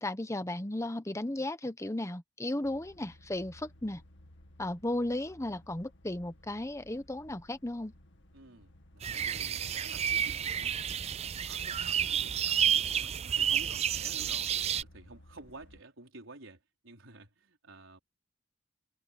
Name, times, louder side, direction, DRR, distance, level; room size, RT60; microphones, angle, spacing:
voice 1, 0.0-4.0 4.6-7.9, left 1 dB, 15° left, 1.1 m, -35 dB
sound 1, 2.6-15.8, left 1 dB, 65° left, 2.3 m, -58 dB
voice 2, 8.3-11.1 11.5-18.0, right 2 dB, 75° right, 4.8 m, -52 dB
sound 2, 9.0-14.8, right 9 dB, 30° right, 0.4 m, -30 dB
head